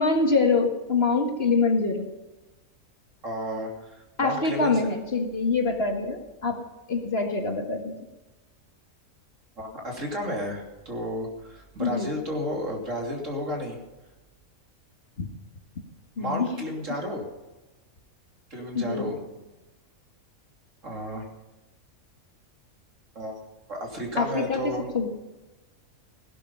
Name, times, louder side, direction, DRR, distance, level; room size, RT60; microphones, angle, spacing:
voice 1, 0.0-2.1 4.2-6.6 6.9-7.9 11.8-12.1 15.2-15.3 16.2-16.5 18.7-19.1 24.2-25.1, left 4 dB, 45° left, 4 dB, 1.8 m, -25 dB
voice 2, 3.2-4.9 5.2-5.4 9.6-13.8 16.2-17.2 18.5-19.2 20.8-21.2 23.1-23.4 23.7-24.9, equal, 60° right, 1 dB, 3.3 m, -32 dB
16.5 x 12.0 x 5.5 m, 1.1 s
omnidirectional pair, 1.5 m